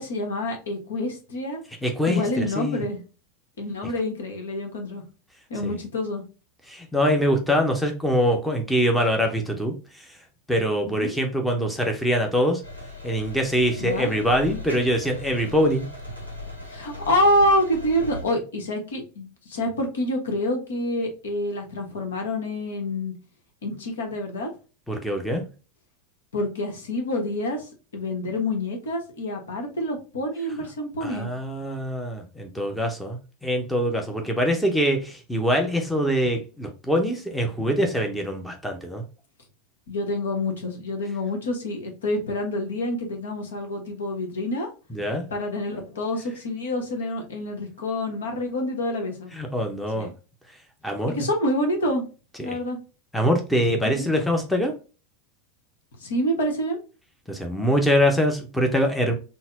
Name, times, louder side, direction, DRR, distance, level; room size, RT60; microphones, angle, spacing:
voice 1, 0.0-1.6 2.1-3.0 3.6-5.0 5.5-6.2 10.8-11.1 13.8-14.1 16.7-23.1 23.6-24.5 26.3-31.3 39.9-44.7 45.3-49.3 49.9-50.1 51.1-52.1 52.4-52.8 54.0-54.1 56.0-56.8, left 1 dB, 65° left, 1.1 m, -27 dB
voice 2, 1.8-2.8 5.6-5.8 6.7-10.1 10.5-12.6 13.0-15.9 24.9-25.5 31.0-39.0 44.9-45.3 49.3-50.1 50.8-51.2 52.4-52.6 53.1-54.7 57.3-59.1, equal, 5° left, 0.7 m, -24 dB
sound 1, 12.6-18.2, left 1 dB, 90° left, 1.0 m, -38 dB
4.0 x 2.1 x 3.8 m
figure-of-eight pair, 85°, 0 cm